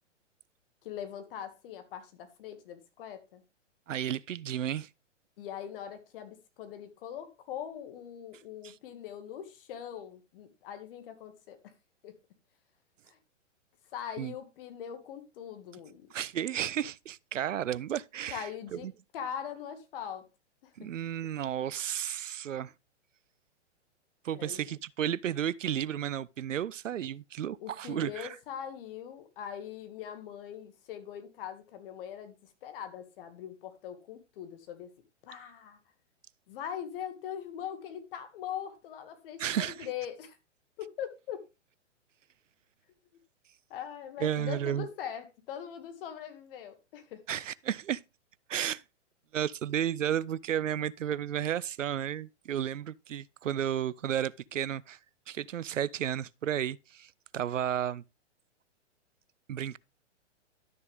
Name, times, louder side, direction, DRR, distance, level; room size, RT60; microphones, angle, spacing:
voice 1, 0.8-3.4 5.4-11.7 12.0-12.1 13.1-13.2 13.9-16.1 18.3-18.9 19.1-20.2 20.6-20.7 24.3-24.6 27.6-32.3 32.6-34.9 35.3-35.8 36.5-40.4 40.8-41.4 43.7-47.2, left 9 dB, 50° left, 2.1 m, -41 dB
voice 2, 3.9-4.9 8.6-8.8 14.2-14.3 16.1-18.9 20.8-22.7 24.2-28.4 39.4-39.9 44.2-44.9 47.3-48.0 48.5-48.8 49.3-55.0 55.3-58.0 59.5-59.8, right 10 dB, 85° right, 0.5 m, -33 dB
12.0 x 6.6 x 3.5 m
hypercardioid pair, 120°, 37 cm